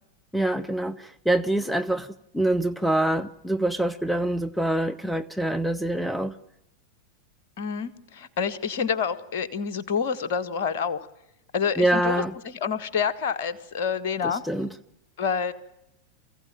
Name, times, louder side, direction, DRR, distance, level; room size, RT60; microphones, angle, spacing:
voice 1, 0.3-2.1 2.3-6.3 11.8-12.3 14.2-14.7, right 1 dB, ahead, 0.8 m, -25 dB
voice 2, 7.6-11.0 11.5-14.4 15.2-15.5, left 6 dB, 50° left, 1.6 m, -28 dB
23.5 x 16.0 x 8.8 m
figure-of-eight pair, 90°, 0 cm